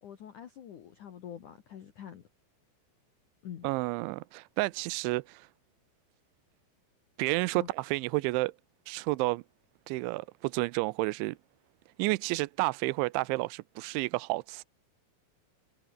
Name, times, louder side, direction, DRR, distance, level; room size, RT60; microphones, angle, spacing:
voice 1, 0.0-2.3 3.4-3.7 7.5-7.7, left 9 dB, 55° left, 2.5 m, -45 dB
voice 2, 3.6-5.5 7.2-8.5 8.9-9.4 9.9-11.4 12.0-14.6, right 22 dB, 85° right, 3.0 m, -30 dB
omnidirectional pair, 5.4 m